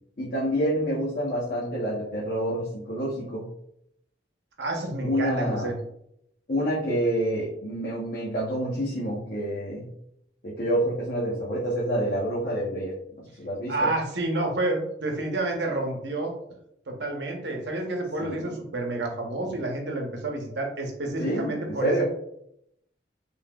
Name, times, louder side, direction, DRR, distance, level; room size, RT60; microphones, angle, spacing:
voice 1, 0.2-3.5 5.0-5.7 6.5-9.9 10.4-13.9 18.2-18.5 21.2-22.0, right 1 dB, 50° left, -7 dB, 0.9 m, -28 dB
voice 2, 4.6-5.7 13.7-16.3 16.9-22.0, right 2 dB, 75° right, 2 dB, 0.8 m, -29 dB
3.9 x 3.4 x 2.3 m, 0.76 s
head